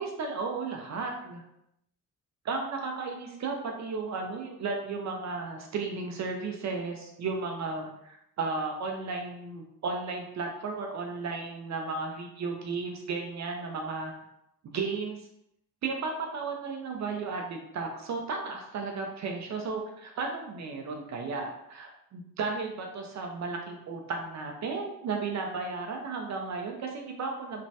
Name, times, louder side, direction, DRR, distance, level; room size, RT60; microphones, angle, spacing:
voice 1, 0.0-1.4 2.4-14.1 14.6-15.2 15.8-27.6, right 4 dB, 50° right, 2 dB, 0.5 m, -34 dB
3.1 x 2.1 x 2.7 m, 0.81 s
cardioid pair, 100°, 37 cm